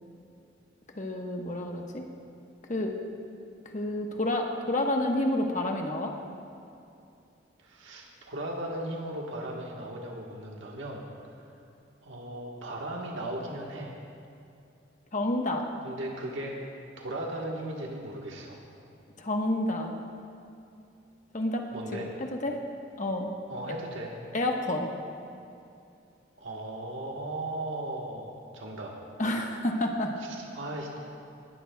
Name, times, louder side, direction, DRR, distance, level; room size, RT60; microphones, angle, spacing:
voice 1, 1.0-2.1 2.7-3.0 3.7-6.1 15.1-15.6 19.2-19.9 21.3-22.6 23.0-23.3 24.3-24.9 29.2-30.1, left 1 dB, 40° left, 2 dB, 1.2 m, -29 dB
voice 2, 7.6-11.0 12.0-13.9 15.8-16.6 17.0-18.6 21.7-22.1 23.5-24.1 26.4-28.9 30.2-31.0, right 1 dB, 85° right, -2 dB, 1.4 m, -37 dB
19.5 x 15.5 x 2.3 m, 2.6 s
head